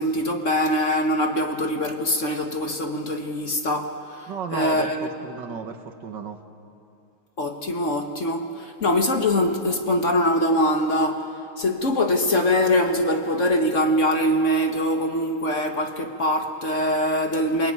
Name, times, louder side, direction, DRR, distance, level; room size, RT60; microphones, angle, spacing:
voice 1, 0.0-5.1 7.4-11.3 11.6-17.7, left 1 dB, 40° left, 1.6 m, -23 dB
voice 2, 4.3-6.4, right 6 dB, 65° right, 2.0 m, -33 dB
27.5 x 22.0 x 9.5 m
omnidirectional pair, 2.2 m